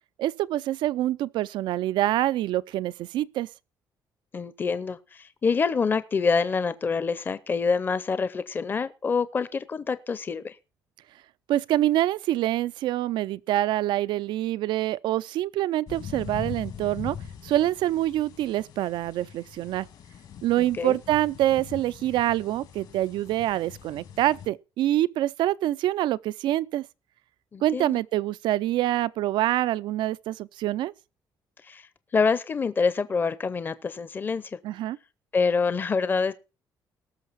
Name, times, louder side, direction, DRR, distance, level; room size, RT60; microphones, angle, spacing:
voice 1, 0.2-3.5 11.5-17.2 17.4-19.9 20.4-26.8 27.6-30.9 34.6-35.0, right 14 dB, 85° right, 0.5 m, -26 dB
voice 2, 4.3-10.6 20.6-21.0 27.5-28.0 31.7-31.8 32.1-34.5 35.3-36.3, left 5 dB, 25° left, 0.7 m, -26 dB
sound 1, 15.9-24.5, left 8 dB, 65° left, 2.0 m, -42 dB
19.0 x 6.5 x 4.0 m
cardioid pair, 150°, 8 cm